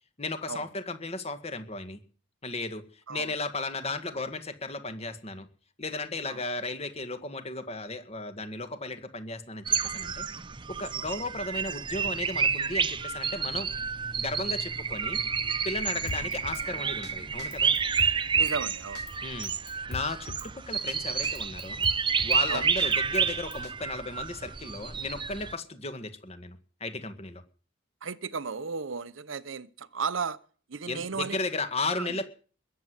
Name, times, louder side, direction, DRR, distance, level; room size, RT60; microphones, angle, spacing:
voice 1, 0.2-2.0 2.4-5.5 5.8-10.3 10.7-13.7 14.2-15.2 15.6-17.7 19.2-19.5 19.9-21.8 22.2-27.4 30.9-32.2, left 2 dB, 35° left, 1.8 m, -35 dB
sound 1, 9.7-25.5, right 6 dB, 25° right, 0.7 m, -30 dB
Drum kit, 16.1-16.6 17.0-17.1 17.4-18.6 19.0-19.1 19.4-20.5 20.9-21.0 21.2-22.4 22.8-23.7, left 3 dB, 55° left, 1.1 m, -40 dB
voice 2, 18.4-19.0 22.5-22.7 28.0-30.4 30.7-31.4 32.0-32.2, right 5 dB, 90° right, 0.8 m, -34 dB
21.0 x 7.8 x 8.2 m
head